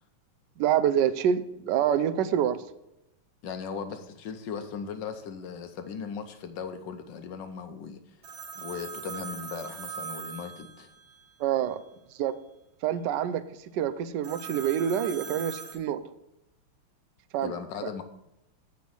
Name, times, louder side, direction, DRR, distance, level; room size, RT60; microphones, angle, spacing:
voice 1, 0.6-2.6 11.4-11.8 12.2-12.3 12.8-13.4 13.7-16.0 17.3-17.5 17.8-17.9, right 9 dB, 70° right, 13 dB, 1.0 m, -26 dB
voice 2, 3.4-8.0 8.6-10.9 17.4-18.0, left 6 dB, 65° left, 8 dB, 1.3 m, -38 dB
Telephone, 8.2-11.3 14.2-15.7, right 6 dB, 50° right, 1.8 m, -40 dB
7.8 x 5.1 x 7.0 m, 0.86 s
omnidirectional pair, 2.4 m